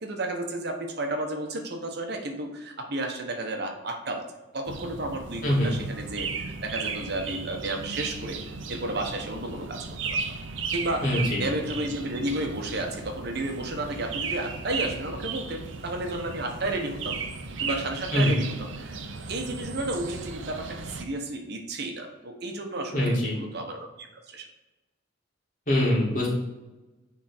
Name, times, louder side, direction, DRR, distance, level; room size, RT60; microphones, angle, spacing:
voice 1, 0.0-4.3 4.5-8.4 8.7-9.9 10.7-17.2 17.6-24.5, right 2 dB, 60° right, 4 dB, 1.0 m, -32 dB
sound 1, 4.7-21.0, right 4 dB, 80° right, 0.8 m, -35 dB
voice 2, 11.0-11.4 18.1-18.4 22.9-23.3 25.7-26.3, left 1 dB, 45° left, -4 dB, 2.6 m, -23 dB
9.7 x 3.6 x 4.4 m, 1.1 s
head